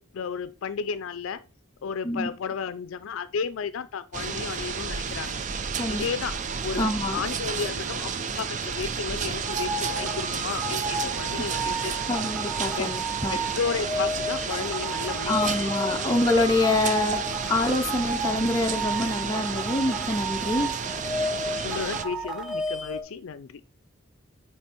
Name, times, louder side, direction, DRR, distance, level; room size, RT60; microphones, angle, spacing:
voice 1, 0.0-1.4 1.8-5.4 5.9-6.4 6.6-8.1 8.4-12.2 12.8-12.9 13.3-15.8 21.6-23.6, left 6 dB, 80° left, 0.4 m, -33 dB
sound 1, 4.1-22.1, right 6 dB, 35° right, 0.5 m, -32 dB
voice 2, 6.8-7.2 12.1-13.4 15.3-20.8, left 2 dB, 15° left, 0.5 m, -26 dB
sound 2, 9.4-23.0, right 1 dB, 5° right, 0.9 m, -32 dB
8.7 x 3.4 x 4.3 m
head